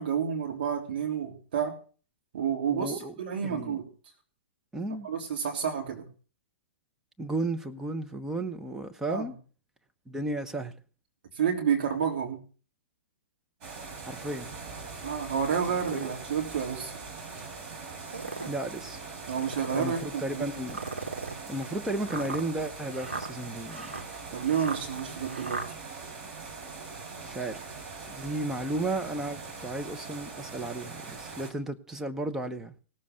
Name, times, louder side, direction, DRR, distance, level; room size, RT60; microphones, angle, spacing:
voice 1, 0.0-1.7 2.3-3.9 5.0-6.0 9.1-9.3 11.3-12.4 15.0-16.9 19.3-20.4 24.3-25.6, right 7 dB, 55° right, 3.2 m, -30 dB
voice 2, 2.7-3.1 3.4-3.8 4.7-5.1 7.2-9.4 10.1-10.7 14.0-14.6 15.9-16.1 18.4-19.0 19.7-20.8 21.5-24.0 27.2-27.7 28.1-32.7, right 2 dB, 5° right, 1.0 m, -34 dB
sound 1, 13.6-31.5, right 4 dB, 35° right, 4.3 m, -42 dB
sound 2, 15.4-16.2 16.8-16.9 17.9-18.6 19.3-20.0 20.7-25.7, right 3 dB, 80° right, 2.4 m, -38 dB
17.5 x 7.5 x 7.9 m
figure-of-eight pair, 110°, 7 cm